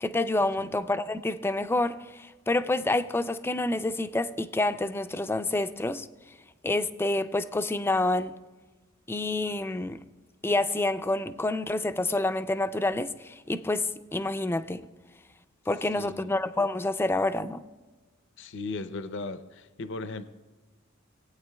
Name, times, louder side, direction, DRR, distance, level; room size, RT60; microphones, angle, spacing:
voice 1, 0.0-6.1 6.6-8.3 9.1-10.0 10.4-14.8 15.7-17.6, left 2 dB, 10° left, 10 dB, 0.3 m, -28 dB
voice 2, 15.9-16.3 18.4-20.3, left 3 dB, 65° left, 11 dB, 0.5 m, -37 dB
19.0 x 8.9 x 2.3 m, 1.3 s
head